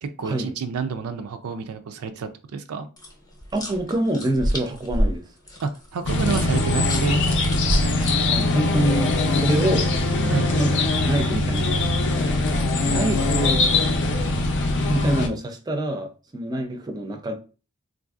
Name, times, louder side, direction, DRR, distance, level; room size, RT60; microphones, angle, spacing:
voice 1, 0.0-2.9 5.6-7.2 10.3-10.5, right 5 dB, 80° right, 0.4 m, -29 dB
sound 1, 3.0-8.9 11.5-13.0, equal, 20° left, 0.7 m, -30 dB
voice 2, 3.5-5.2 8.2-10.8 11.0-11.9 12.8-13.6 14.9-17.3, right 1 dB, 20° right, 0.4 m, -26 dB
sound 2, 6.1-15.3, left 2 dB, 55° left, 0.5 m, -22 dB
3.8 x 2.5 x 2.3 m
head